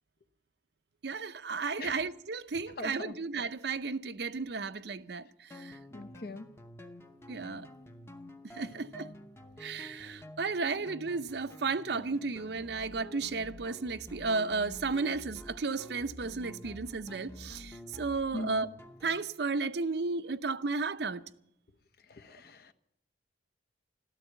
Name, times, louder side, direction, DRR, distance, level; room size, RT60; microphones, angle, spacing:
voice 1, 1.0-5.8 7.3-7.7 8.5-9.1 9.6-18.7 19.0-21.2, right 4 dB, 60° right, 0.6 m, -34 dB
voice 2, 2.8-3.2 5.9-6.5 18.3-18.5 22.1-22.7, left 2 dB, 55° left, 0.8 m, -41 dB
sound 1, 5.5-19.2, left 1 dB, 15° left, 0.8 m, -49 dB
13.0 x 13.0 x 8.0 m
head